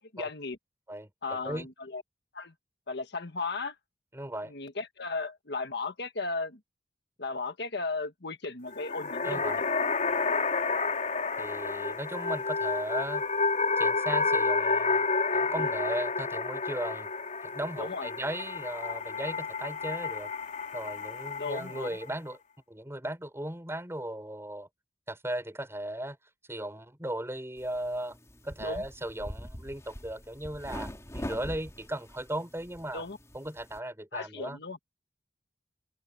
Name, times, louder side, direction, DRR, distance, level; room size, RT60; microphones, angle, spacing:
voice 1, 0.1-0.6 1.2-2.0 2.3-2.5 2.9-3.7 4.5-6.6 7.2-9.7 17.8-18.1 21.4-22.0 28.6-28.8 32.9-33.2 34.1-34.8, left 3 dB, 65° left, 1.5 m, -35 dB
voice 2, 0.9-1.7 4.1-4.5 9.2-9.6 11.4-13.2 13.8-15.1 15.3-17.1 17.4-20.3 20.7-22.4 22.7-24.7 25.1-26.2 26.5-28.2 28.4-33.0 33.3-34.6, right 1 dB, 15° right, 7.0 m, -37 dB
sound 1, 8.7-22.1, left 4 dB, 45° left, 3.6 m, -30 dB
sound 2, 27.6-33.8, equal, 15° left, 4.1 m, -43 dB
open air
head